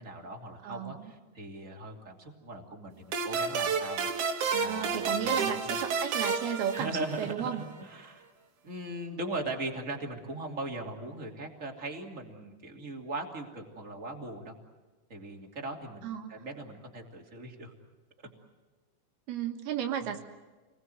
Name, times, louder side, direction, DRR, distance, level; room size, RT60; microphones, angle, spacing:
voice 1, 0.0-5.8 6.7-8.3 8.6-14.5 15.1-17.7 18.2-18.3, right 2 dB, 20° right, 1 dB, 2.5 m, -39 dB
voice 2, 0.6-1.1 4.5-6.9 7.2-7.6 16.0-16.3 19.3-20.2, right 9 dB, 70° right, 5 dB, 3.2 m, -34 dB
sound 1, 3.1-7.5, right 5 dB, 55° right, 2.8 m, -31 dB
29.0 x 20.5 x 7.9 m, 1.3 s
omnidirectional pair, 4.9 m